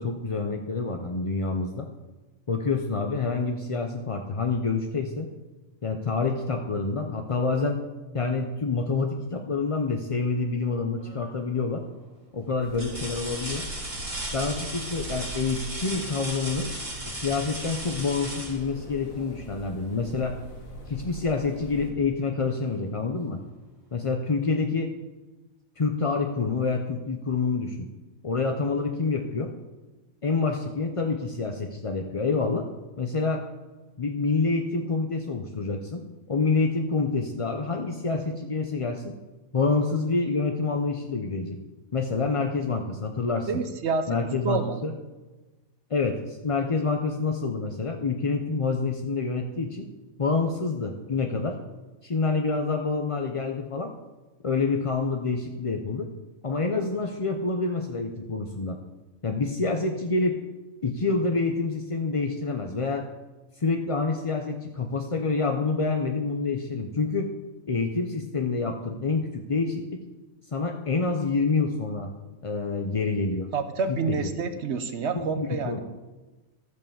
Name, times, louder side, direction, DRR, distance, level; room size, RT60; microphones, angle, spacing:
voice 1, 0.0-1.9 2.5-5.3 5.8-7.8 8.1-11.8 12.3-13.7 14.3-16.7 17.1-20.4 20.9-23.4 23.9-24.9 25.8-27.9 28.2-29.5 30.2-32.7 33.0-33.4 34.0-36.0 36.3-39.1 39.5-41.6 41.9-43.5 44.1-44.9 45.9-49.9 50.2-51.6 52.0-53.9 54.4-56.1 56.4-58.8 59.2-60.4 60.8-63.1 63.6-67.3 67.7-70.0 70.5-72.1 72.4-73.5 73.9-74.3 75.1-75.8, left 4 dB, 35° left, 3 dB, 0.5 m, -27 dB
sound 1, 11.0-11.5 12.0-12.1 12.7-19.4 21.2-21.3 21.8-22.8 24.1-24.2, right 1 dB, 20° right, 2.4 m, -37 dB
sound 2, 12.6-21.9, equal, 70° left, 2.0 m, -42 dB
voice 2, 43.5-44.2 44.4-44.8 73.5-75.8, right 5 dB, 55° right, 8 dB, 1.0 m, -28 dB
14.0 x 5.5 x 7.1 m, 1.2 s
omnidirectional pair, 1.5 m